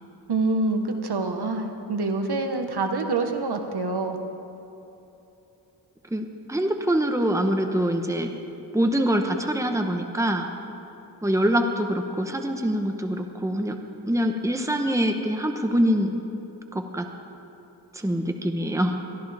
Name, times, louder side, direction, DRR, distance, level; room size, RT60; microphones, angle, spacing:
voice 1, 0.3-4.2, right 3 dB, 70° right, 5 dB, 1.3 m, -26 dB
voice 2, 6.1-8.3 8.7-10.5 11.2-13.8 14.1-16.1 16.7-17.1 17.9-19.0, equal, 5° right, 4 dB, 1.0 m, -24 dB
22.0 x 14.0 x 3.5 m, 2.9 s
wide cardioid pair, 90°, 41 cm